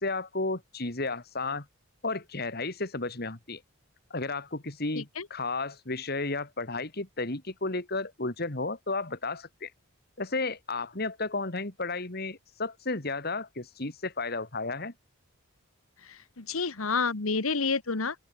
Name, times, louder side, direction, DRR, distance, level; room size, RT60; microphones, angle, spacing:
voice 1, 0.0-1.7 2.0-3.6 4.1-9.7 10.2-14.9, left 3 dB, 50° left, 2.5 m, -33 dB
voice 2, 4.9-5.3 16.0-18.1, left 4 dB, 85° left, 1.5 m, -29 dB
open air
head